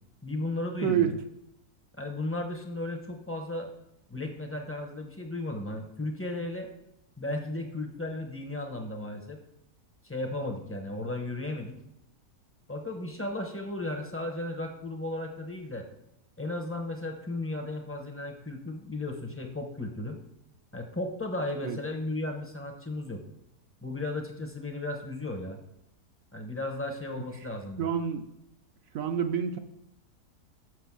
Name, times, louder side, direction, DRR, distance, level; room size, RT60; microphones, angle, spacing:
voice 1, 0.2-1.2 2.0-3.7 4.1-6.7 7.2-9.4 10.0-11.8 12.7-15.9 16.4-20.2 20.7-23.2 23.8-25.6 26.3-27.9, left 2 dB, 15° left, 3 dB, 0.6 m, -35 dB
voice 2, 0.8-1.1 21.6-21.8 27.8-28.2 28.9-29.6, right 8 dB, 70° right, 6 dB, 0.9 m, -27 dB
6.1 x 6.0 x 6.0 m, 0.82 s
omnidirectional pair, 1.7 m